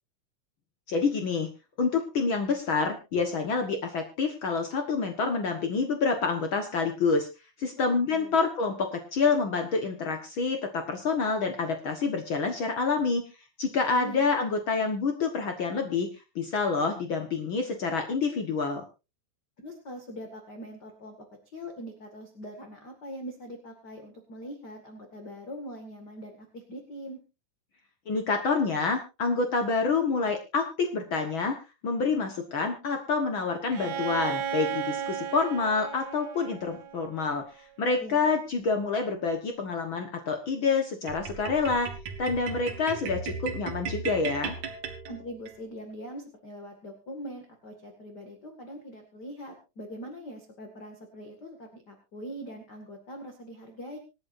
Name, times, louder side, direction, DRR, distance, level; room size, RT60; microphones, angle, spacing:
voice 1, 0.9-1.5 1.8-7.3 7.6-13.2 13.6-16.1 16.3-18.8 28.1-31.6 31.8-37.4 37.8-41.9 42.2-44.6, left 4 dB, 80° left, 5 dB, 1.1 m, -27 dB
voice 2, 7.8-8.4 13.9-14.3 19.6-21.3 21.5-27.2 38.0-38.2 45.1-54.0, equal, 35° left, 4 dB, 1.9 m, -42 dB
Bowed string instrument, 33.7-37.5, right 8 dB, 80° right, 1.5 m, -34 dB
sound 1, 41.1-45.5, right 5 dB, 55° right, 2.9 m, -36 dB
26.0 x 9.6 x 2.6 m, 0.28 s
omnidirectional pair, 4.5 m